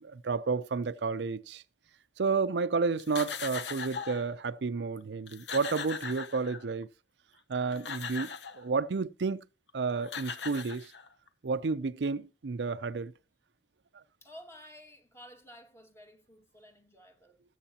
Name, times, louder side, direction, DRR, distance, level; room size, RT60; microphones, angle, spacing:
voice 1, 0.0-1.6 2.2-6.9 7.5-9.4 9.7-10.9 11.4-13.1 13.9-14.0, right 4 dB, 75° right, 0.5 m, -31 dB
sound 1, 3.0-4.3 5.0-5.1 5.3-6.8 7.5-8.6 9.7-9.8 10.0-11.3, left 6 dB, 85° left, 1.0 m, -39 dB
voice 2, 14.2-17.4, equal, 15° left, 2.0 m, -53 dB
20.0 x 8.1 x 2.8 m
head